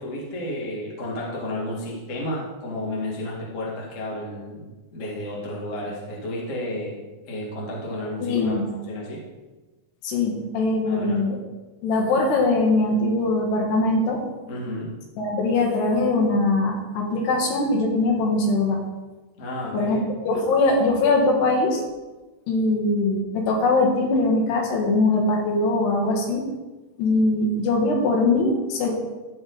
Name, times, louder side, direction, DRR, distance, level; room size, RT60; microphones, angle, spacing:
voice 1, 0.0-8.5 8.9-9.2 10.8-11.2 14.5-14.9 19.4-20.0, left 1 dB, 45° left, -4 dB, 0.9 m, -32 dB
voice 2, 8.2-8.7 10.0-11.4 11.8-14.2 15.2-18.8 19.7-21.8 22.5-26.4 27.0-28.9, left 2 dB, 70° left, 0 dB, 3.4 m, -21 dB
15.0 x 5.0 x 4.0 m, 1.2 s
omnidirectional pair, 5.2 m